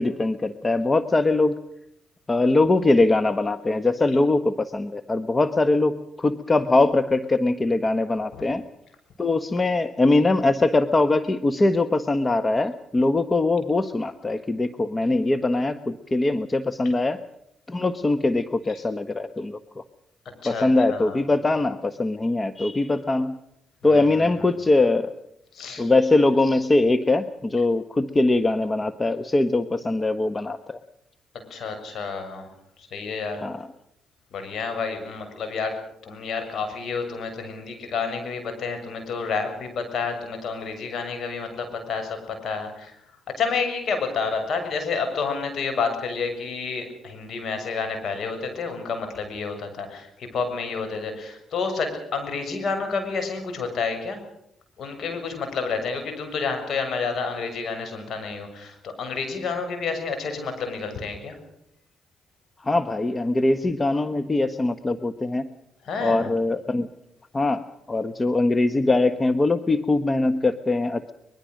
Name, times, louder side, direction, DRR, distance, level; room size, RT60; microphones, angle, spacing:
voice 1, 0.0-1.6 2.3-8.6 9.2-17.2 17.7-19.8 20.4-23.4 23.8-25.1 25.8-30.8 33.4-33.7 62.6-65.5 66.0-66.9 67.3-67.6 67.9-71.1, left 2 dB, 30° left, 11 dB, 1.3 m, -22 dB
voice 2, 20.4-21.2 23.8-24.2 25.5-25.9 31.5-32.5 32.8-33.4 34.3-35.8 36.0-43.0 43.4-54.2 54.8-61.4 65.8-66.3, left 5 dB, 60° left, 6 dB, 6.8 m, -29 dB
23.5 x 22.0 x 6.5 m, 0.77 s
supercardioid pair, 55°, 0 cm